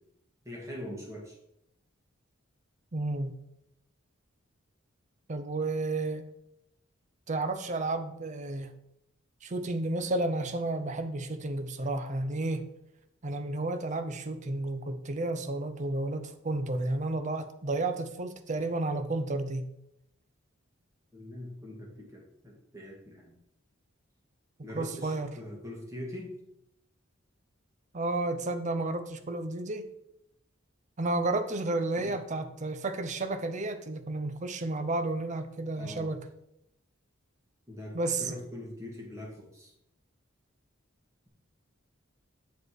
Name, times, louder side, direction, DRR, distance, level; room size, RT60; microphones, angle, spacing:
voice 1, 0.4-1.4 21.1-23.4 24.6-26.3 32.0-32.1 35.8-36.1 37.7-39.7, left 1 dB, 15° right, -2 dB, 2.1 m, -42 dB
voice 2, 2.9-3.3 5.3-6.2 7.3-8.7 9.4-12.6 13.2-19.7 24.7-25.3 27.9-29.9 31.0-36.2 37.9-38.4, right 2 dB, 35° right, 10 dB, 0.6 m, -32 dB
8.1 x 5.0 x 4.8 m, 0.81 s
head